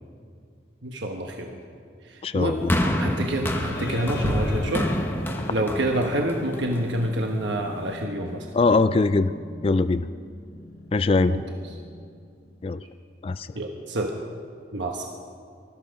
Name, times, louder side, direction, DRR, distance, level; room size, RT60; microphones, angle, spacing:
voice 1, 0.8-1.6 2.0-2.6 3.0-4.9 5.5-8.5 11.3-11.6 13.5-14.2 14.7-15.1, right 1 dB, 80° right, 2 dB, 1.1 m, -27 dB
voice 2, 2.2-2.8 8.5-9.3 9.6-10.1 10.9-11.4 12.6-12.8 13.2-13.5, left 3 dB, 30° left, 13 dB, 0.3 m, -21 dB
sound 1, 2.7-7.0 7.8-7.9, equal, 10° left, 1.1 m, -27 dB
sound 2, 3.7-12.6, left 2 dB, 55° left, 1.0 m, -40 dB
19.5 x 13.0 x 5.2 m, 2.2 s
head